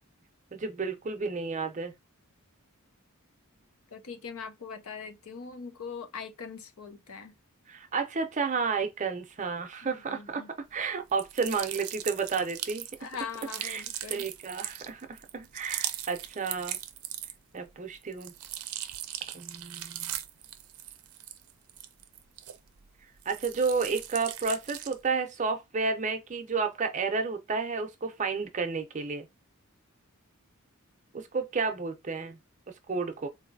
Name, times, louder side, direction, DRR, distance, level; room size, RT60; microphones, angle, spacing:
voice 1, 0.5-1.9 7.7-10.4 10.7-12.9 13.6-13.8 14.1-16.8 17.5-18.3 19.3-20.2 23.3-29.3 31.1-32.4 32.9-33.3, right 4 dB, 35° right, 0.6 m, -31 dB
voice 2, 3.9-7.3 9.8-10.5 13.0-14.3, left 6 dB, 75° left, 0.6 m, -41 dB
sound 1, 11.1-17.6 17.9-22.8 23.2-25.1, right 12 dB, 80° right, 0.5 m, -39 dB
3.9 x 2.6 x 2.6 m
head